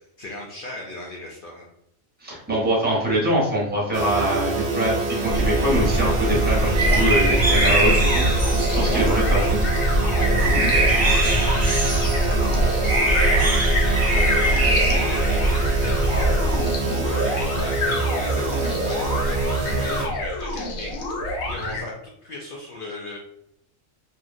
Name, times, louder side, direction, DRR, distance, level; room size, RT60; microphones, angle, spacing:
voice 1, 0.2-1.7 8.9-9.0 10.1-10.3 10.7-16.3 17.0-21.0 21.5-23.2, left 2 dB, 65° left, -2 dB, 0.5 m, -37 dB
voice 2, 2.2-4.9 5.2-9.6, equal, 10° right, -5 dB, 0.8 m, -23 dB
sound 1, 3.9-20.1, right 3 dB, 60° right, 0.5 m, -26 dB
sound 2, 5.3-16.7, right 1 dB, 35° right, 0.9 m, -21 dB
sound 3, 6.8-21.8, left 2 dB, 90° left, 1.1 m, -28 dB
2.9 x 2.6 x 2.5 m, 0.75 s
omnidirectional pair, 1.4 m